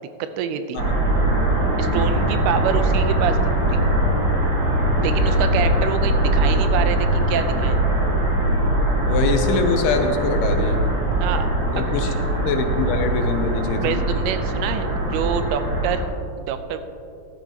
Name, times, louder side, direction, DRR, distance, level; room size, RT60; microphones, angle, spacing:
voice 1, 0.2-0.8 1.8-3.8 5.0-7.8 11.2-11.5 11.8-12.2 13.8-16.8, right 8 dB, 90° right, 9 dB, 2.7 m, -26 dB
sound 1, 0.8-16.1, right 1 dB, 50° right, 1.5 m, -21 dB
voice 2, 9.1-10.8 11.7-12.1 12.5-14.0, left 4 dB, 85° left, 6 dB, 2.8 m, -24 dB
13.5 x 12.5 x 2.9 m, 2.4 s
omnidirectional pair, 4.4 m